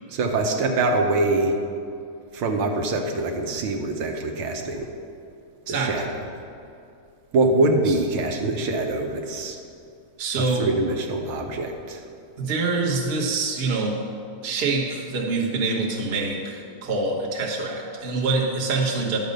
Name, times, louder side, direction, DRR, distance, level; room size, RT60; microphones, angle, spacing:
voice 1, 0.1-1.6 2.3-4.9 5.7-6.1 7.3-9.6 10.6-12.0, right 2 dB, 80° right, 3 dB, 1.7 m, -24 dB
voice 2, 5.7-6.1 7.9-8.0 10.2-10.7 12.4-14.0 14.4-19.2, right 3 dB, 35° right, -1 dB, 1.1 m, -25 dB
10.5 x 5.3 x 6.5 m, 2.4 s
omnidirectional pair, 2.3 m